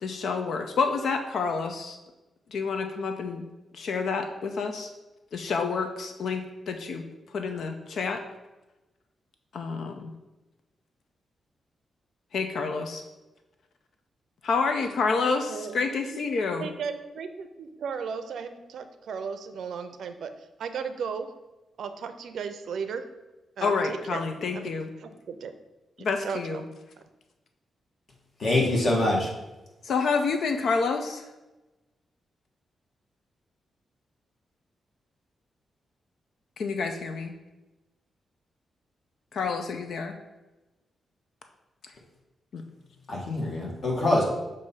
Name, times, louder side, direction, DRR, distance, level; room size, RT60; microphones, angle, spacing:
voice 1, 0.0-2.0 2.5-3.4 3.7-4.9 5.3-7.0 7.3-8.2 9.5-10.1 12.3-13.0 14.4-16.7 23.6-24.9 26.0-26.6 29.8-31.3 36.6-37.3 39.3-40.1 42.5-42.6, left 4 dB, 65° left, 6 dB, 0.5 m, -28 dB
voice 2, 15.2-15.8 16.1-16.2 16.6-21.3 21.8-23.0 23.6-24.2 24.5-24.7 25.0-25.5 26.2-26.6, right 6 dB, 75° right, 9 dB, 0.5 m, -35 dB
voice 3, 28.4-29.3 43.1-44.2, left 1 dB, 45° left, -2 dB, 1.5 m, -24 dB
6.4 x 2.7 x 5.5 m, 1.1 s
wide cardioid pair, 135°, 0 cm